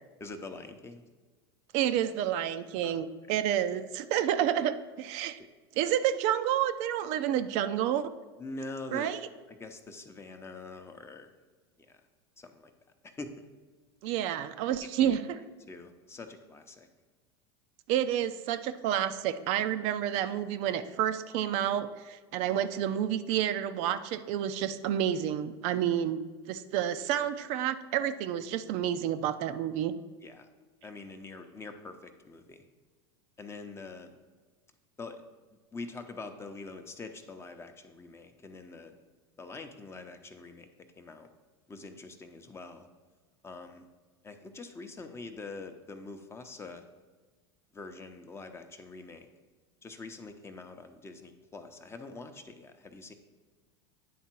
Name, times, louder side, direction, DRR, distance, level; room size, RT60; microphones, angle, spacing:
voice 1, 0.2-1.0 2.8-3.0 5.4-5.5 8.4-9.1 9.5-11.3 11.9-12.0 12.4-12.7 13.0-13.5 15.0-16.9 30.2-30.5 30.8-32.7 33.4-34.2 35.0-35.2 35.7-38.9 39.4-40.7 41.0-41.3 41.7-42.9 43.4-43.8 44.2-46.9 47.7-49.3 49.8-53.1, left 3 dB, 20° left, 6 dB, 0.7 m, -44 dB
voice 2, 1.7-5.4 5.8-8.1 8.9-9.2 14.0-15.4 17.9-26.2 26.5-29.9, right 10 dB, 60° right, 10 dB, 0.4 m, -29 dB
9.3 x 3.6 x 4.5 m, 1.3 s
hypercardioid pair, 95°, 13 cm